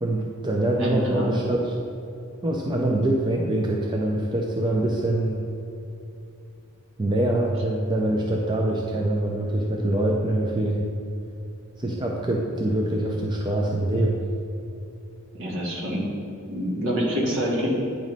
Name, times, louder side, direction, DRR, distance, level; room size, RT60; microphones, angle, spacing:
voice 1, 0.0-1.7 2.4-5.4 7.0-10.8 11.8-14.2, right 1 dB, 20° right, -1 dB, 0.5 m, -24 dB
voice 2, 0.8-1.3 15.3-16.1 16.5-17.7, equal, 65° right, -3 dB, 1.6 m, -26 dB
9.2 x 3.1 x 5.2 m, 2.7 s
head